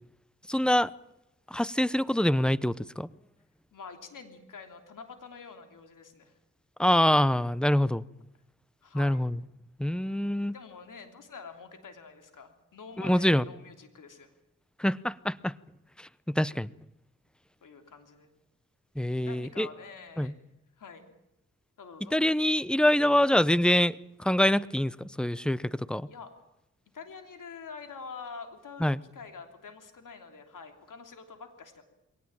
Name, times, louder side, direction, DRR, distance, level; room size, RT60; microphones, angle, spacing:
voice 1, 0.5-0.9 1.5-3.1 6.8-8.0 8.9-9.3 9.8-10.5 13.0-13.4 14.8-15.5 16.4-16.7 19.0-19.7 20.2-20.3 22.1-26.1 28.8-29.0, left 1 dB, 5° left, 19 dB, 0.8 m, -25 dB
voice 2, 3.7-6.3 8.8-9.3 10.5-14.3 17.6-18.3 19.2-20.5 20.8-21.1 21.8-22.2 26.0-26.3 26.9-31.8, left 5 dB, 80° left, 6 dB, 3.2 m, -46 dB
22.5 x 18.5 x 8.9 m, 0.87 s
cardioid pair, 60°, 31 cm